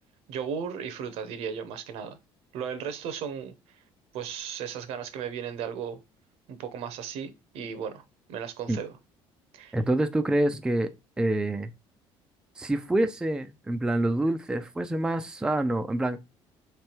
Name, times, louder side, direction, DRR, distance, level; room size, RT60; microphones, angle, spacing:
voice 1, 0.3-2.2 2.5-3.8 4.1-6.0 6.5-8.0 8.3-9.0 9.5-9.8, right 7 dB, 75° right, 0.9 m, -35 dB
voice 2, 9.7-10.9 11.2-11.7 12.6-16.2, right 1 dB, 5° right, 0.4 m, -26 dB
3.3 x 3.3 x 4.4 m
cardioid pair, 115°, 11 cm